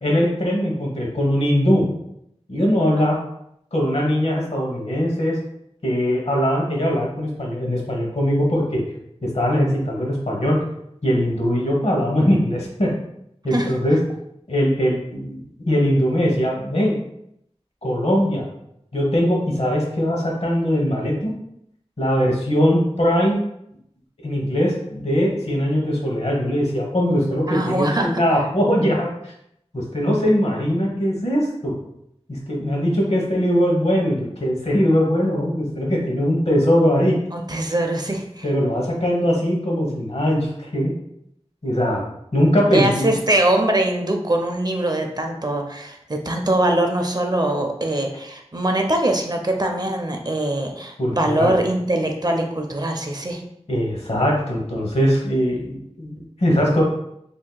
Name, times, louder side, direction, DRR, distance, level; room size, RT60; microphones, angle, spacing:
voice 1, 0.0-1.9 2.5-3.2 3.7-5.4 5.8-8.8 9.2-10.6 11.0-12.9 13.4-14.0 14.5-16.9 17.8-18.5 18.9-21.3 22.0-23.4 24.2-29.3 29.7-31.7 32.5-37.2 38.4-40.9 41.6-42.0 42.3-43.1 51.0-51.5 53.7-56.8, equal, 65° left, -1 dB, 1.0 m, -21 dB
voice 2, 27.5-28.2 37.3-38.5 42.7-53.4, right 1 dB, 35° right, 3 dB, 0.5 m, -22 dB
2.7 x 2.3 x 3.8 m, 0.76 s
wide cardioid pair, 50°, 11 cm